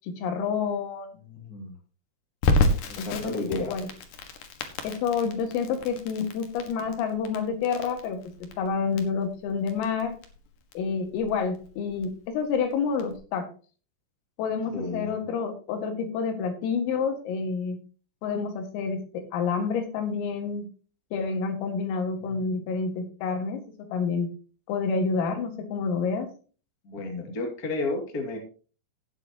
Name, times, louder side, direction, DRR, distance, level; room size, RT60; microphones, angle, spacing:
voice 1, 0.0-1.1 3.0-3.9 4.8-10.2 10.8-13.5 14.4-17.8 18.2-20.7 21.1-23.7 23.9-24.3 24.7-26.3, left 5 dB, 80° left, 5 dB, 4.6 m, -28 dB
voice 2, 1.3-1.7 2.9-3.7 14.7-15.1 22.3-22.4 26.8-28.4, left 2 dB, 35° left, 1 dB, 1.4 m, -32 dB
Crackle, 2.4-13.2, left 2 dB, 65° left, 2.0 m, -31 dB
17.5 x 7.7 x 2.9 m, 0.37 s
omnidirectional pair, 5.9 m